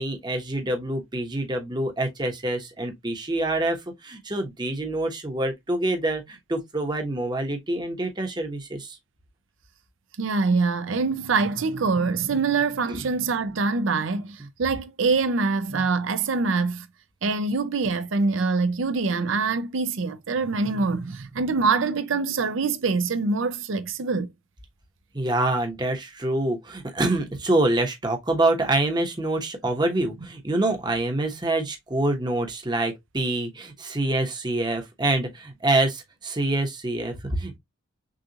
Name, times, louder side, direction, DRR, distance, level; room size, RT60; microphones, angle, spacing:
voice 1, 0.0-9.0 12.9-13.0 15.7-15.8 25.1-37.6, right 2 dB, 20° right, 1.0 m, -26 dB
voice 2, 10.2-16.9 17.2-24.3, right 4 dB, 75° right, 0.5 m, -24 dB
6.4 x 2.4 x 2.8 m
head